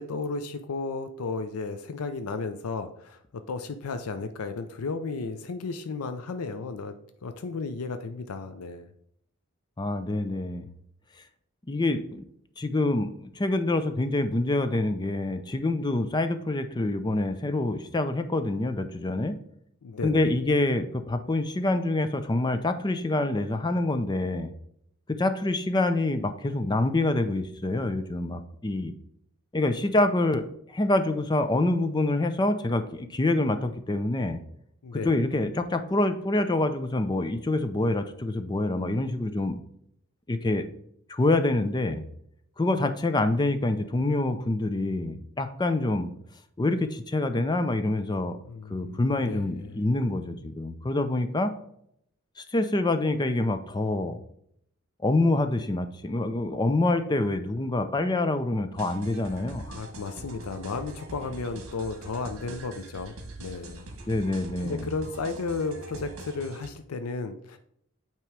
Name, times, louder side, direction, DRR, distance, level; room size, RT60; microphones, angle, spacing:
voice 1, 0.0-3.2 3.5-7.0 7.2-8.9 19.8-20.3 34.8-35.1 48.5-49.9 59.7-63.9 64.6-67.6, left 4 dB, 90° left, 8 dB, 0.5 m, -34 dB
voice 2, 9.8-10.7 11.7-12.2 12.6-19.4 20.0-24.5 25.1-28.9 29.5-30.4 30.7-34.4 34.9-39.6 40.3-40.7 41.1-42.0 42.6-46.1 46.6-48.4 48.7-51.5 52.4-54.2 55.0-59.8 64.1-64.9, left 2 dB, 20° left, 9 dB, 0.5 m, -26 dB
sound 1, 58.8-66.7, right 2 dB, 65° right, 1.3 m, -43 dB
8.9 x 3.0 x 4.7 m, 0.71 s
head